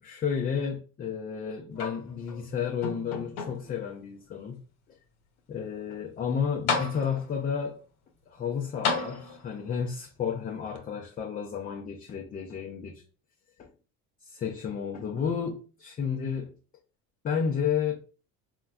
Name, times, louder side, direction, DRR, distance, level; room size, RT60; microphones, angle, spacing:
voice 1, 0.0-4.6 5.5-7.8 8.3-13.0 13.6-13.7 14.3-16.5 17.2-18.0, left 7 dB, 25° left, 0.3 m, -32 dB
sound 1, 1.7-2.4 2.8-3.8 4.5-4.6 6.2-6.3 6.7-7.4 8.8-9.7 10.8-10.9, left 4 dB, 70° left, 0.9 m, -32 dB
3.7 x 2.1 x 2.2 m
supercardioid pair, 95°, 39 cm